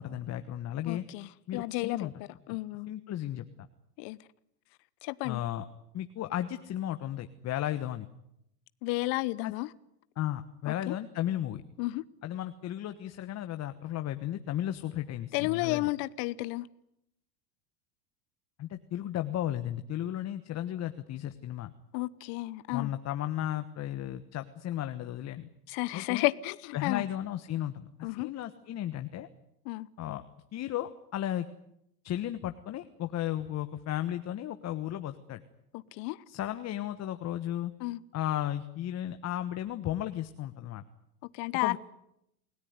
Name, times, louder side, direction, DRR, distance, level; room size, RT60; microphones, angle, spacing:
voice 1, 0.0-1.0 1.5-2.1 2.5-2.6 2.9-3.4 5.2-5.6 5.9-8.1 9.4-9.5 10.2-11.6 12.2-15.9 18.6-21.7 22.7-25.5 25.9-26.3 26.7-29.3 30.0-30.2 30.5-31.5 32.0-35.4 36.3-37.7 38.1-40.8 41.5-41.8, left 12 dB, 35° left, 1.3 m, -34 dB
voice 2, 0.9-2.1 2.5-2.9 4.0-4.2 5.0-5.4 8.8-9.7 10.7-10.9 11.8-12.0 15.3-16.7 21.9-22.9 25.7-27.0 28.0-28.3 29.6-29.9 35.7-36.2 37.8-38.0 41.3-41.8, left 21 dB, 50° left, 1.0 m, -32 dB
29.0 x 17.5 x 9.5 m
hypercardioid pair, 105°, 48 cm